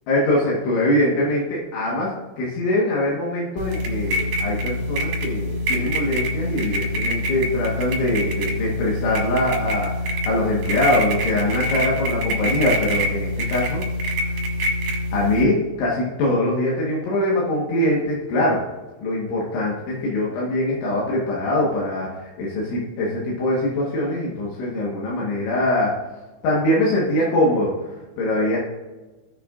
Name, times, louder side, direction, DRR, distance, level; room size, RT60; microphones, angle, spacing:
voice 1, 0.1-13.9 14.2-14.3 15.1-18.6 19.0-25.9 26.4-28.6, left 1 dB, 80° left, -5 dB, 3.9 m, -23 dB
sound 1, 3.6-15.4, left 1 dB, 65° right, 3.2 m, -25 dB
17.5 x 6.6 x 2.5 m, 1.2 s
omnidirectional pair, 5.4 m